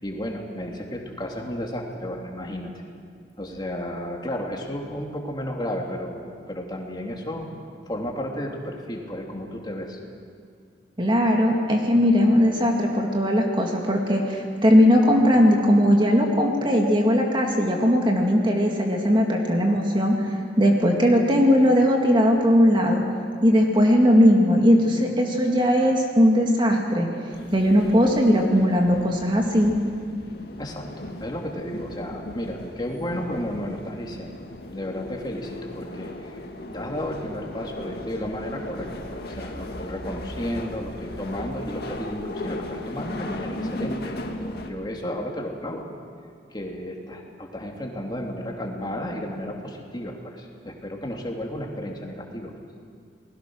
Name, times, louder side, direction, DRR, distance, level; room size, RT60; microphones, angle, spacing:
voice 1, 0.0-2.7 3.4-7.5 7.9-10.0 30.6-30.9 31.2-34.4 34.7-36.4 36.7-45.9 46.5-52.5, equal, 25° left, 0 dB, 2.9 m, -33 dB
voice 2, 11.0-23.0 23.4-27.1 27.5-29.7, equal, 25° right, 0 dB, 2.2 m, -19 dB
sound 1, 27.3-44.7, left 1 dB, 60° left, 2.1 m, -37 dB
29.5 x 20.5 x 6.4 m, 2.2 s
head